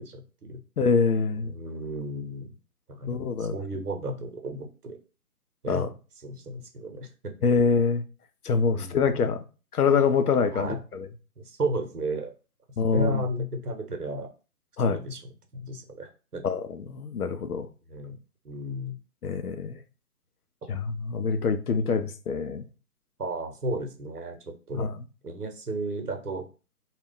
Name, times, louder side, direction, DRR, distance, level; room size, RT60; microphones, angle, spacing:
voice 1, 0.0-0.6 1.4-2.5 2.9-5.0 5.6-5.9 6.2-7.1 8.8-9.2 10.5-10.8 11.4-12.3 12.9-14.3 14.8-15.2 15.5-16.4 17.9-18.2 18.4-19.0 23.2-24.9 25.2-26.5, right 1 dB, 75° right, 0.9 m, -33 dB
voice 2, 0.8-1.5 3.1-3.5 5.7-5.9 7.4-8.0 8.4-9.4 9.7-11.1 12.8-13.2 14.8-15.0 16.4-17.7 19.2-19.8 20.7-22.7 24.8-24.9, left 5 dB, 75° left, 0.6 m, -25 dB
2.3 x 2.2 x 3.6 m
figure-of-eight pair, 145°, 46 cm